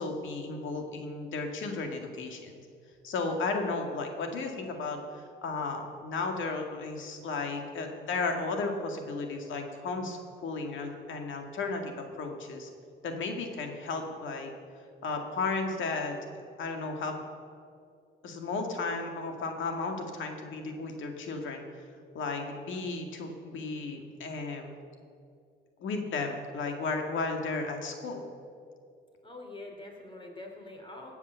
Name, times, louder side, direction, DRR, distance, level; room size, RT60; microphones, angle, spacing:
voice 1, 0.0-2.5 3.0-5.0 5.4-12.7 13.0-14.5 15.0-16.2 16.6-17.2 18.2-21.7 22.1-24.7 25.8-28.2, left 3 dB, 75° left, 4 dB, 2.0 m, -34 dB
voice 2, 29.2-31.1, left 2 dB, 25° left, 1 dB, 3.2 m, -44 dB
18.5 x 7.2 x 6.9 m, 2.3 s
cardioid pair, 90°, 20 cm